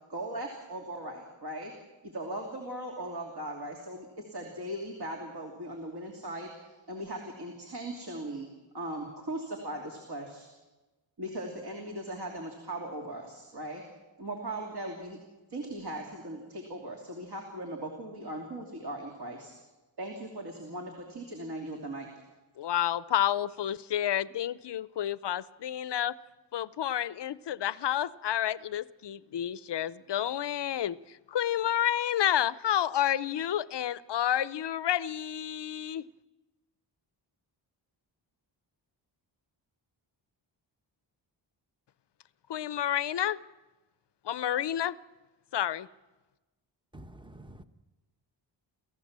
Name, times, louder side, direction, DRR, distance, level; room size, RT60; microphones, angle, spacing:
voice 1, 0.1-1.7 2.0-8.5 8.7-10.5 11.2-13.8 14.2-15.2 15.5-19.5 20.0-22.1, right 1 dB, 50° right, 3.0 m, -39 dB
voice 2, 22.6-26.2 26.5-36.0 42.5-43.4 44.2-45.0 45.5-45.9, left 11 dB, 60° left, 0.7 m, -30 dB
voice 3, 46.9-47.6, right 1 dB, 10° right, 0.9 m, -48 dB
28.5 x 15.0 x 7.4 m
wide cardioid pair, 150°, 47 cm